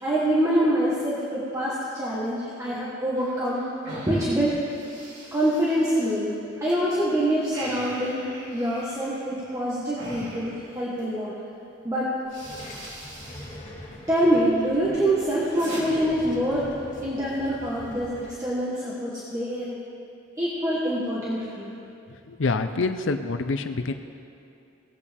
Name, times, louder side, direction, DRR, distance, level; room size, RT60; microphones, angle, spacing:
voice 1, 0.0-3.7 4.1-4.6 5.3-11.3 11.8-12.1 14.1-16.7 17.0-19.8 20.4-21.7, right 1 dB, 15° right, -8 dB, 1.4 m, -25 dB
sound 1, 3.1-6.8 7.1-11.1 11.8-11.9 12.2-13.6 13.9-14.5 14.9-15.8, right 1 dB, 65° right, 3.1 m, -42 dB
sound 2, 12.2-18.3, left 1 dB, 40° left, 2.4 m, -43 dB
voice 2, 22.3-23.9, left 3 dB, 70° left, 9 dB, 0.6 m, -26 dB
19.0 x 8.3 x 3.6 m, 2.6 s
head